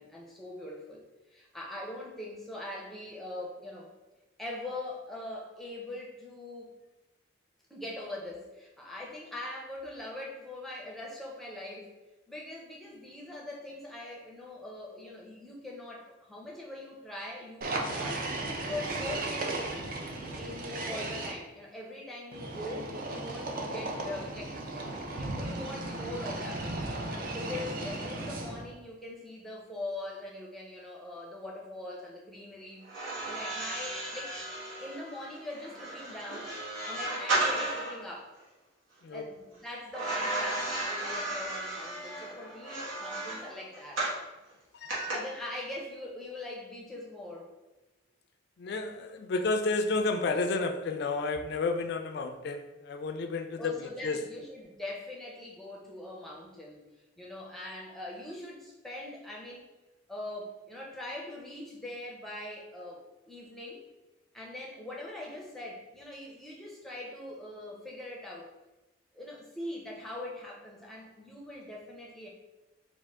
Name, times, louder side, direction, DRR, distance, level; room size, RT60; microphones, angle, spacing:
voice 1, 0.0-3.9 4.4-6.7 7.7-11.9 12.3-18.2 18.7-19.6 20.2-26.7 27.3-34.4 34.8-36.5 36.9-38.3 39.1-44.1 45.1-47.5 53.6-56.8 57.2-59.7 60.1-63.8 64.3-68.5 69.1-72.3, left 1 dB, ahead, -3 dB, 0.5 m, -42 dB
sound 1, 17.6-21.3 22.3-28.7, right 2 dB, 45° right, 0.4 m, -36 dB
sound 2, 32.8-38.0 39.9-44.2 44.9-45.1, right 2 dB, 90° right, 1.2 m, -34 dB
voice 2, 44.7-45.1 48.6-54.3, left 3 dB, 55° left, 6 dB, 0.3 m, -31 dB
3.6 x 2.4 x 3.4 m, 1.1 s
head